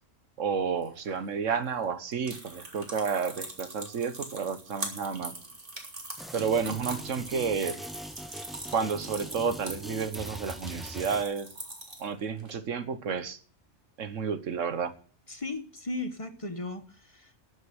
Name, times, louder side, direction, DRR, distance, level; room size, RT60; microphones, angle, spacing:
voice 1, 0.4-5.3 6.3-7.8 8.7-11.5 12.0-13.4 14.0-14.9, right 6 dB, 85° right, 12 dB, 1.5 m, -31 dB
sound 1, 0.8-12.5, right 2 dB, 45° right, 2.7 m, -42 dB
sound 2, 6.2-11.2, equal, ahead, 0.4 m, -42 dB
voice 2, 15.3-17.4, left 2 dB, 25° left, 8 dB, 1.2 m, -36 dB
13.0 x 6.6 x 9.3 m, 0.42 s
omnidirectional pair, 1.3 m